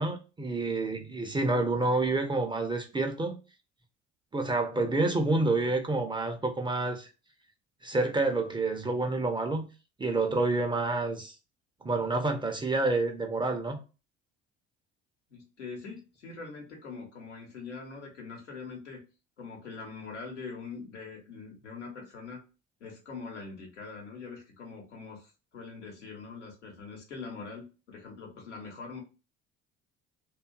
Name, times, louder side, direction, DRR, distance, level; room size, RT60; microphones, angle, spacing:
voice 1, 0.0-3.4 4.3-7.1 7.8-9.7 10.0-11.3 11.8-13.8, right 2 dB, 15° right, 0.5 m, -28 dB
voice 2, 15.3-19.0 19.4-22.4 22.8-29.0, left 4 dB, 85° left, 0.9 m, -43 dB
2.5 x 2.3 x 2.2 m
figure-of-eight pair, 60°, 35 cm